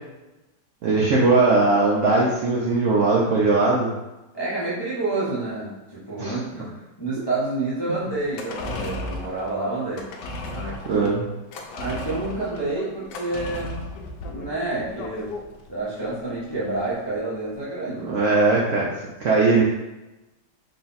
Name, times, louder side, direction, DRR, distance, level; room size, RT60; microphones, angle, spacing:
voice 1, 0.8-3.9 6.2-6.4 10.8-11.3 18.0-18.9 19.2-19.6, right 3 dB, 65° right, -5 dB, 0.8 m, -19 dB
voice 2, 4.3-10.1 10.5-11.1 11.7-13.9 14.3-18.2, right 2 dB, 25° left, -9 dB, 0.5 m, -29 dB
sound 1, 8.2-16.8 17.1-17.2, left 2 dB, 80° left, 1.2 m, -35 dB
3.9 x 2.3 x 4.0 m, 1.0 s
omnidirectional pair, 1.8 m